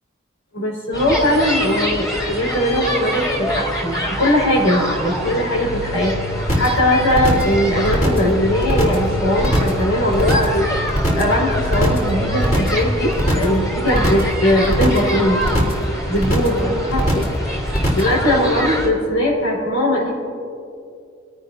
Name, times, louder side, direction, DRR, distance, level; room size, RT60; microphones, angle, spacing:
voice 1, 0.5-10.7 11.1-15.4 16.1-17.0 18.0-20.1, left 1 dB, 85° left, -2 dB, 5.0 m, -19 dB
sound 1, 0.9-18.9, equal, 20° left, 3.3 m, -26 dB
sound 2, 5.2-12.6, right 1 dB, 65° left, 3.7 m, -32 dB
sound 3, 6.5-6.8 7.1-7.5 7.8-8.3 8.6-9.1 9.4-9.8 10.1-10.6 10.9-11.3 11.6-12.1 12.4-12.8 13.1-13.6 13.9-14.3 14.6-15.1 15.4-15.8 16.1-16.6 16.9-17.4 17.7-18.1, equal, 40° left, 3.8 m, -20 dB
27.0 x 17.0 x 2.7 m, 2.5 s
head